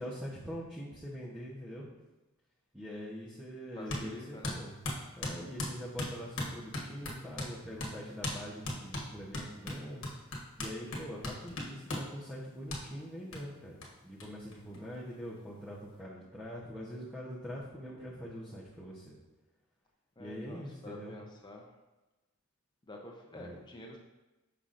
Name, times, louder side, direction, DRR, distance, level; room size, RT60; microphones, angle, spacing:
voice 1, 0.0-1.9 2.7-4.8 5.2-10.3 10.6-19.1 20.2-21.2 23.3-23.6, equal, 5° right, -7 dB, 0.8 m, -43 dB
voice 2, 3.8-4.6 14.6-15.0 20.2-21.7 22.9-24.0, left 1 dB, 20° left, 0 dB, 0.7 m, -49 dB
sound 1, 3.9-4.1 4.4-7.5 7.8-7.9 8.2-8.4 8.6-12.1 12.7-12.8 13.3-13.4 13.8-13.9 14.2-14.3 14.5-15.3, left 1 dB, 60° left, 1.3 m, -37 dB
6.6 x 5.7 x 2.5 m, 1.1 s
head